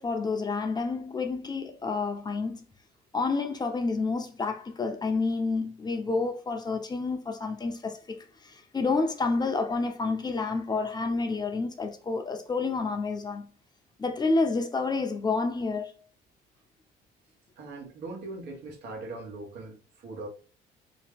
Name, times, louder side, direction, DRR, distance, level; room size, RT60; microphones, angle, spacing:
voice 1, 0.0-2.6 3.1-8.0 8.4-13.4 14.0-15.9, left 3 dB, 25° left, 0.7 m, -29 dB
voice 2, 17.6-20.3, right 2 dB, 75° right, 1.2 m, -40 dB
3.3 x 3.0 x 3.4 m
cardioid pair, 110°, 17 cm